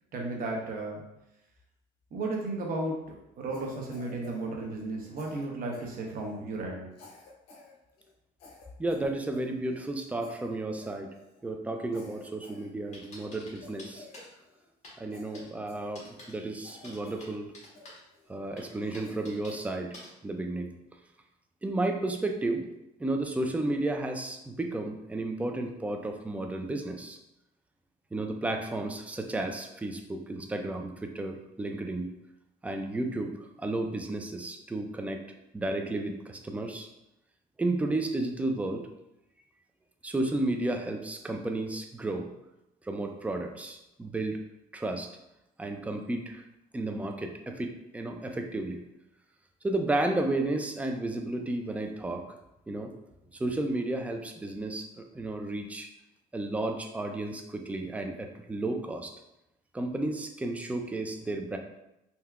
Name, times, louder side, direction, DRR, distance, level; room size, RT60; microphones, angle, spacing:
voice 1, 0.1-1.0 2.1-3.0 3.4-6.9, right 2 dB, 60° right, -1 dB, 0.8 m, -34 dB
Cough, 3.5-4.9 5.2-6.4 6.9-7.7 8.0-8.1 8.4-9.9 10.2-10.5 10.8-11.4 11.9-13.1 13.6-14.7 15.1-16.3 16.6-17.3 17.7-18.3 18.8-19.7, left 3 dB, 75° left, 0.8 m, -52 dB
voice 2, 8.8-11.1 11.4-14.1 15.0-17.5 18.3-20.0 20.2-20.7 21.6-22.7 23.0-27.2 28.1-32.1 32.6-35.2 35.5-36.9 37.6-38.9 40.0-42.3 42.8-44.4 44.7-45.1 45.6-46.4 46.7-48.8 49.6-52.2 52.7-52.9 53.4-55.9 56.3-59.1 59.7-61.6, right 2 dB, 10° right, 4 dB, 0.3 m, -32 dB
sound 1, 12.9-14.3 14.8-15.0 15.3-15.5 16.0-16.3 16.8-18.0 18.6-19.6 19.9-20.1, left 1 dB, 45° left, 1.2 m, -48 dB
3.4 x 2.7 x 2.3 m, 0.89 s
cardioid pair, 110°, 17 cm